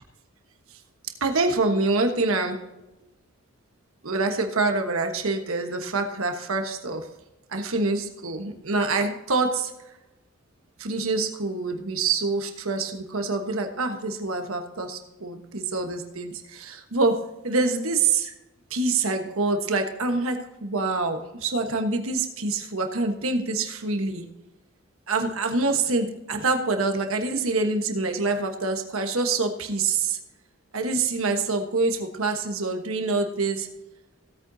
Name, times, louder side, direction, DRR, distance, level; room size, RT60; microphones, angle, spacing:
voice 1, 1.2-2.6 4.0-7.1 7.5-9.7 10.8-18.3 18.7-24.2 25.1-30.2 30.7-33.7, right 3 dB, 75° right, 5 dB, 1.3 m, -26 dB
17.0 x 8.7 x 2.8 m, 0.98 s
head